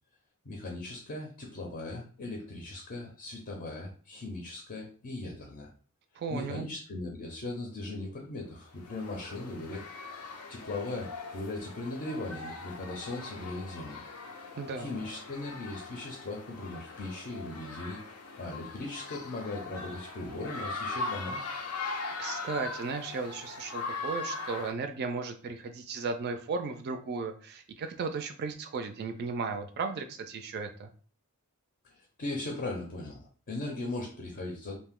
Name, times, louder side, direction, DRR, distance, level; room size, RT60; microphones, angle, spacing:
voice 1, 0.5-5.7 6.3-9.9 10.5-14.0 14.8-18.0 18.4-21.4 31.8-34.8, left 2 dB, 40° left, 0 dB, 0.5 m, -38 dB
voice 2, 6.2-6.7 14.5-14.9 22.2-30.9, right 4 dB, 45° right, 7 dB, 0.3 m, -35 dB
sound 1, 8.7-24.7, left 3 dB, 90° left, 0.5 m, -40 dB
2.6 x 2.0 x 3.6 m, 0.42 s
head